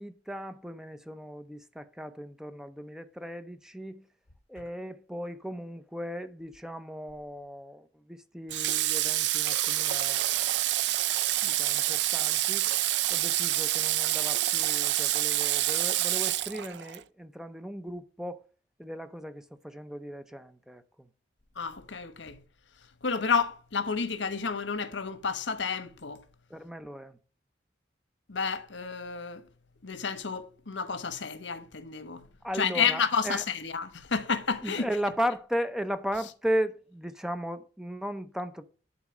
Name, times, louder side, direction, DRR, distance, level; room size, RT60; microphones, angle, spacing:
voice 1, 0.0-4.0 4.5-10.6 11.4-12.7 13.1-18.4 18.8-21.1 26.5-27.2 32.4-33.4 34.6-38.6, equal, 5° right, 0.6 m, -36 dB
Water / Water tap faucet, 8.5-17.0, right 14 dB, 70° right, 0.4 m, -27 dB
voice 2, 21.6-22.4 23.0-26.2 28.3-29.4 29.8-32.2 32.5-34.8, left 5 dB, 85° left, 1.1 m, -30 dB
11.0 x 4.3 x 7.2 m
head